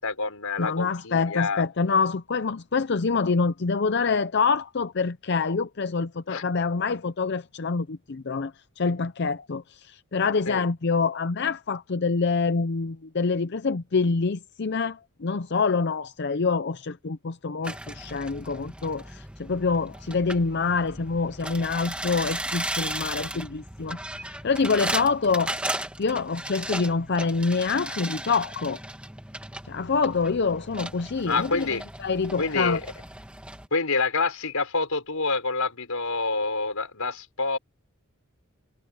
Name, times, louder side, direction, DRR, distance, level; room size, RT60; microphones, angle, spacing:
voice 1, 0.0-1.6 6.3-6.4 10.5-10.6 23.1-23.3 31.3-31.8 32.4-32.8 33.7-37.6, left 3 dB, 85° left, 4.9 m, -27 dB
voice 2, 0.6-25.6 26.0-28.8 29.7-32.8, left 4 dB, 50° left, 0.6 m, -26 dB
sound 1, 17.6-33.7, right 1 dB, 5° right, 1.8 m, -36 dB
head